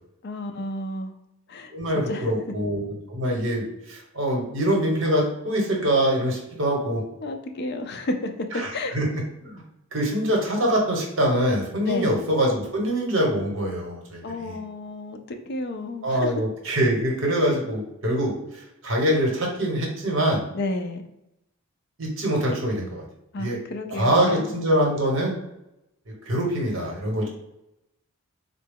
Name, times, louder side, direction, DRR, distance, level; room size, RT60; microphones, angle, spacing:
voice 1, 0.2-1.1 1.5-2.3 7.2-8.3 8.7-9.0 11.8-12.2 14.2-16.3 20.5-21.0 23.3-24.5 27.2-27.3, left 2 dB, 45° left, 5 dB, 0.4 m, -31 dB
voice 2, 1.7-7.0 8.5-9.1 9.4-9.6 9.9-14.6 16.0-20.4 22.0-23.0 23.4-23.6 23.9-25.4 26.3-27.3, right 1 dB, 60° right, -1 dB, 1.0 m, -24 dB
3.8 x 2.2 x 3.5 m, 0.85 s
head